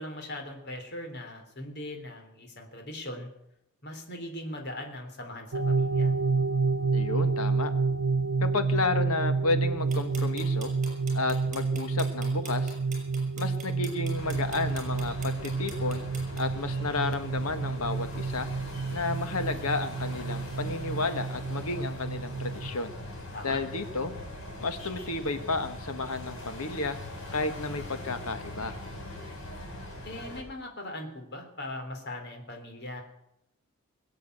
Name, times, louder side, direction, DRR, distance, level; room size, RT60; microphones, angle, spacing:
voice 1, 0.0-3.3 3.8-6.1 23.3-23.6 30.0-33.0, left 1 dB, 50° left, 4 dB, 3.3 m, -40 dB
sound 1, 5.5-22.7, right 4 dB, 90° right, 0.8 m, -29 dB
voice 2, 6.9-7.7 8.4-10.7 11.1-12.8 13.4-16.0 16.4-18.5 18.9-22.9 23.4-24.1 24.6-27.0 27.3-28.8, left 3 dB, 80° left, 9 dB, 1.6 m, -32 dB
sound 2, 9.9-16.4, right 4 dB, 35° right, 6.1 m, -44 dB
sound 3, 14.1-30.4, left 1 dB, 65° left, 6.8 m, -41 dB
20.5 x 8.3 x 7.9 m, 0.81 s
head